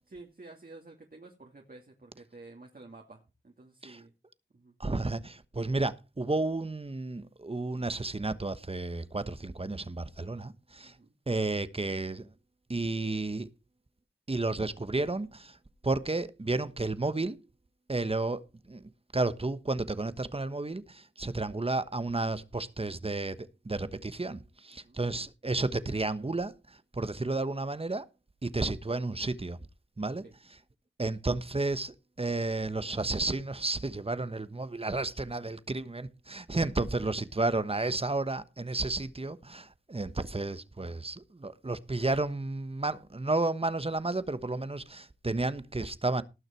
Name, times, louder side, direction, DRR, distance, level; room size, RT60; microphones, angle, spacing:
voice 1, 0.1-4.1 4.5-4.7 10.8-11.1 24.7-25.0 30.2-30.3 36.8-37.0, right 2 dB, 50° right, 2.6 m, -51 dB
voice 2, 4.8-10.9 11.3-12.3 12.7-13.5 14.3-15.6 15.8-17.4 17.9-18.4 18.7-26.5 26.9-28.0 28.4-29.6 30.0-30.2 31.0-46.2, right 2 dB, 30° right, 1.1 m, -32 dB
18.5 x 6.4 x 4.5 m
cardioid pair, 45°, 19 cm